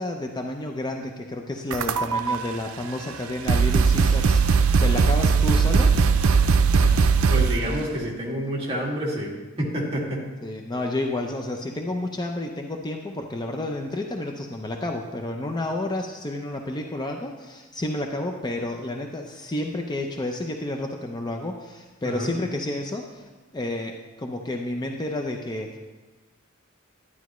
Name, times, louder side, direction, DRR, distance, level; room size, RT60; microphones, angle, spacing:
voice 1, 0.0-5.9 10.4-25.8, left 1 dB, 20° left, 2 dB, 0.5 m, -30 dB
sound 1, 1.7-2.3 3.1-3.2 3.5-7.7, right 5 dB, 90° right, 0.5 m, -19 dB
voice 2, 7.3-9.3 9.6-10.2 22.0-22.3, equal, 30° right, -3 dB, 2.1 m, -28 dB
11.5 x 9.6 x 3.1 m, 1.3 s
head